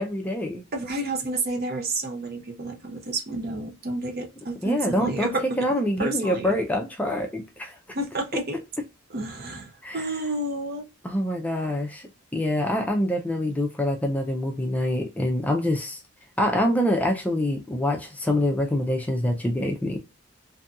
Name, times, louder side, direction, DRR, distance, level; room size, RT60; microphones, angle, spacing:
voice 1, 0.0-0.6 4.6-7.7 9.8-10.1 11.0-16.0 16.4-20.0, left 1 dB, 5° left, 0.4 m, -25 dB
voice 2, 0.7-5.4 6.0-6.5 7.9-8.6 9.1-10.9, right 2 dB, 45° right, 0.6 m, -30 dB
2.6 x 2.6 x 2.3 m
head